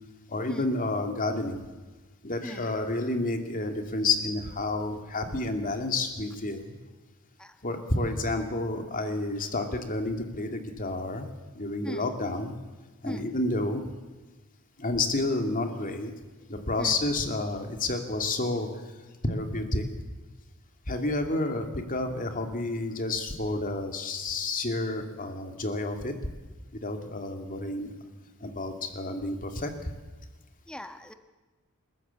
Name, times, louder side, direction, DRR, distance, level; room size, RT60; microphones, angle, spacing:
voice 1, 0.3-1.6 2.2-6.7 7.6-11.3 11.5-12.5 13.0-13.8 14.8-16.1 16.5-18.7 19.2-19.8 20.9-26.2 26.8-27.9 28.4-29.7, left 2 dB, 40° left, 5 dB, 2.6 m, -30 dB
voice 2, 30.7-31.1, equal, 5° left, 8 dB, 1.3 m, -38 dB
28.5 x 13.5 x 8.3 m, 1.2 s
head